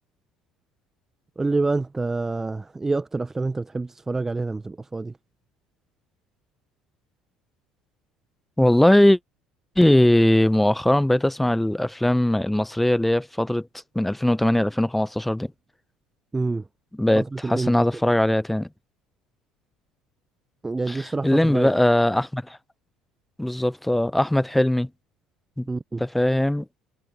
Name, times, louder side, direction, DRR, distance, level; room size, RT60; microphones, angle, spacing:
voice 1, 1.4-5.1 16.3-16.6 17.1-17.8 20.6-21.8 25.7-26.0, right 3 dB, 15° right, 1.2 m, -27 dB
voice 2, 8.6-9.2 9.8-13.7 13.9-15.5 17.0-18.7 20.9-22.6 23.4-24.9 25.6-25.7 26.0-26.7, left 1 dB, 5° left, 1.0 m, -20 dB
figure-of-eight pair, 55°, 2 cm